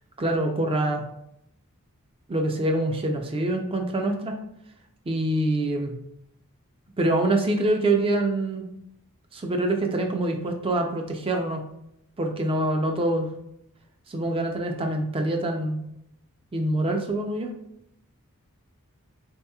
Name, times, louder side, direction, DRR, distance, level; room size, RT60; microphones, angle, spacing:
voice 1, 0.2-1.0 2.3-4.4 5.1-6.0 7.0-8.7 9.3-11.6 12.2-13.3 14.1-15.8 16.5-17.5, right 1 dB, 25° right, 3 dB, 0.4 m, -25 dB
3.9 x 2.9 x 2.3 m, 0.79 s
head